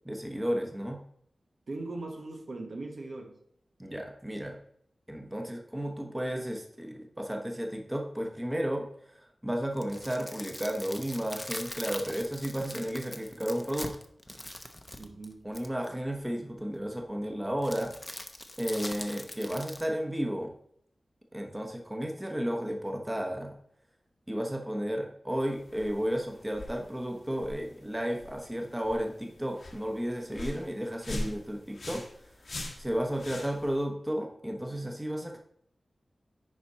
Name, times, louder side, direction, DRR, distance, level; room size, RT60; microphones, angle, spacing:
voice 1, 0.0-1.0 3.8-4.6 5.1-13.9 15.4-17.9 18.6-20.5 21.3-23.5 24.3-32.3 32.8-35.4, equal, 15° right, 2 dB, 1.2 m, -33 dB
voice 2, 1.7-3.4 15.0-15.5, right 2 dB, 65° right, 2 dB, 1.3 m, -39 dB
sound 1, 9.6-15.9 17.6-19.9, left 1 dB, 20° left, 0.9 m, -42 dB
sound 2, 25.4-33.8, left 1 dB, 75° left, 1.6 m, -43 dB
10.0 x 4.3 x 4.2 m, 0.68 s
wide cardioid pair, 75°, 0 cm